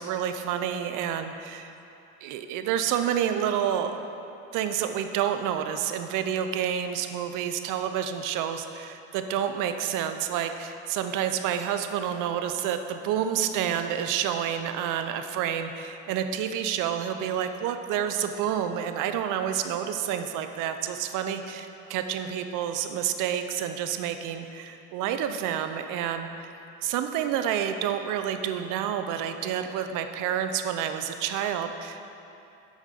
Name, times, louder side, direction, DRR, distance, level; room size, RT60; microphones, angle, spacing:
voice 1, 0.0-1.7 2.2-4.1 4.5-26.5 26.8-32.1, right 9 dB, 55° right, 8 dB, 0.7 m, -29 dB
6.5 x 6.3 x 5.2 m, 2.8 s
hypercardioid pair, 80°, 37 cm